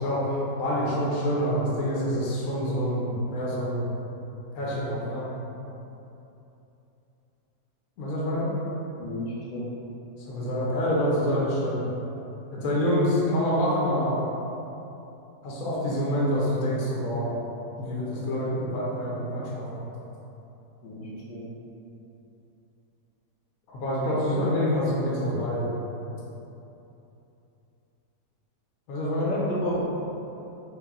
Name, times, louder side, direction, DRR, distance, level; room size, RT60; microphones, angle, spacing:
voice 1, 0.0-3.9 4.5-5.2 8.0-8.5 10.3-11.9 12.5-14.2 15.4-17.3 17.8-19.9 23.7-25.7 28.9-29.4, equal, 65° left, -6 dB, 1.1 m, -26 dB
voice 2, 9.0-9.6 20.8-21.4 29.2-29.8, left 1 dB, 80° left, -6 dB, 1.5 m, -32 dB
3.4 x 2.6 x 3.6 m, 2.9 s
omnidirectional pair, 1.9 m